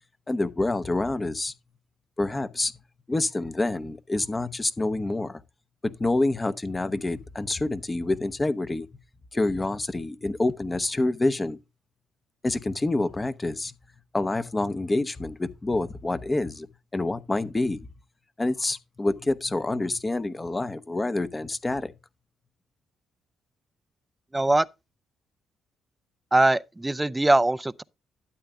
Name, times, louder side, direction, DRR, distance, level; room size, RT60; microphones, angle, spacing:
voice 1, 0.3-1.5 2.2-2.7 3.1-5.4 5.8-8.9 9.3-11.6 12.4-13.7 14.1-16.7 16.9-17.8 18.4-21.9, left 2 dB, 20° left, 0.8 m, -27 dB
voice 2, 24.3-24.7 26.3-27.8, right 2 dB, 15° right, 0.5 m, -21 dB
12.5 x 8.8 x 2.3 m
cardioid pair, 90°, 0 cm